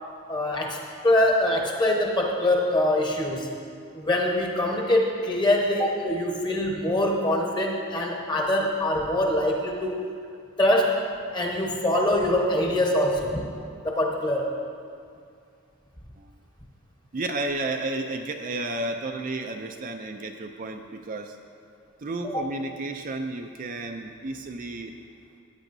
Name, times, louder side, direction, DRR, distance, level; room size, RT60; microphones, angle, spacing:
voice 1, 0.3-3.5 3.9-10.0 10.6-11.0 11.3-13.4 13.8-14.6 22.3-22.4, left 1 dB, 20° left, -1 dB, 1.1 m, -24 dB
voice 2, 17.1-21.4 22.0-25.0, right 2 dB, 40° right, 4 dB, 0.4 m, -32 dB
16.0 x 9.1 x 2.7 m, 2.3 s
head